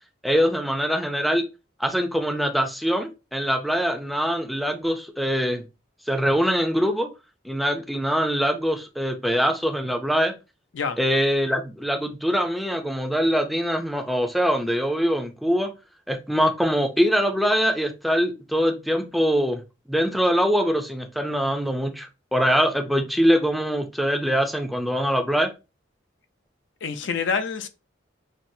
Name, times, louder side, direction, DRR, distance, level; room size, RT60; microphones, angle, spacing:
voice 1, 0.2-1.4 1.8-5.6 6.1-7.1 7.4-10.3 11.0-15.7 16.1-19.6 19.9-25.5, equal, ahead, 0.4 m, -23 dB
voice 2, 26.8-27.7, left 5 dB, 75° left, 0.5 m, -26 dB
5.9 x 2.0 x 2.6 m
head